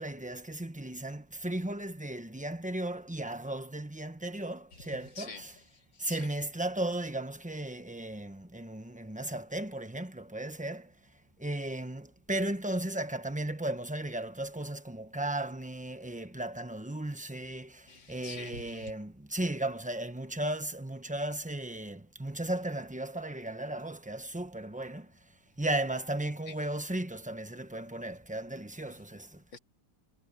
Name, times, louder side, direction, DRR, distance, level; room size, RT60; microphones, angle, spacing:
voice 1, 0.0-5.5 6.0-10.9 11.4-25.1 25.6-29.4, right 1 dB, 5° right, 0.7 m, -35 dB
voice 2, 4.7-6.3 17.9-18.9 26.5-26.7 28.9-29.0 29.5-29.6, left 4 dB, 85° left, 3.1 m, -48 dB
omnidirectional pair, 2.0 m